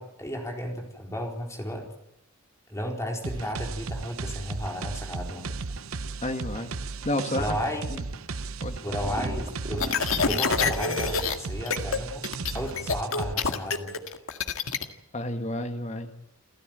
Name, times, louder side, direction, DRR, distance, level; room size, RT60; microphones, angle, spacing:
voice 1, 0.0-1.9 2.7-5.5 7.4-8.0 8.8-9.9 10.3-12.3 12.5-13.9, equal, 15° left, 2 dB, 4.2 m, -33 dB
sound 1, 3.2-13.3, right 3 dB, 70° right, 0.8 m, -35 dB
voice 2, 6.2-6.7 7.0-7.6 7.9-8.0 8.6-8.8 15.1-16.1, left 1 dB, 30° left, 6 dB, 1.7 m, -30 dB
sound 2, 8.9-11.3, right 1 dB, 30° right, 2.4 m, -37 dB
sound 3, 9.8-11.3 11.7-12.0 12.2-14.8, left 5 dB, 70° left, 1.9 m, -26 dB
29.0 x 14.5 x 9.1 m, 0.82 s
head